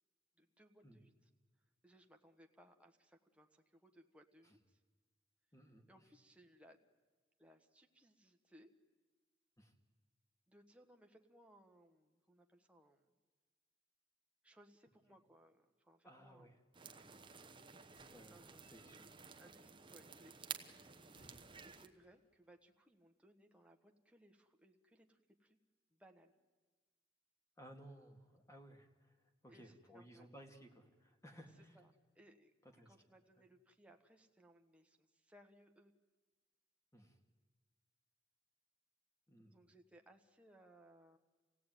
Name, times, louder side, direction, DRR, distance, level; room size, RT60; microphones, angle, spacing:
voice 1, 0.4-1.3 1.8-4.8 5.9-6.8 7.4-8.7 10.5-13.1 14.4-16.6 18.3-18.8 19.3-20.6 21.6-25.6 25.9-26.3 29.5-30.3 31.6-32.5 32.8-35.9 39.4-41.2, right 1 dB, 5° right, 3 dB, 1.4 m, -66 dB
voice 2, 5.5-6.0 9.6-9.7 16.0-16.5 18.1-18.4 18.7-19.1 21.3-21.5 27.6-29.2 29.4-31.8 32.8-32.9 36.9-37.2 39.3-39.6, equal, 15° left, 4 dB, 2.2 m, -59 dB
sound 1, 16.7-21.9, right 6 dB, 25° right, 1.1 m, -53 dB
sound 2, 16.9-19.4 20.7-22.5, equal, 60° left, 7.0 m, -70 dB
26.5 x 16.5 x 9.2 m, 1.3 s
head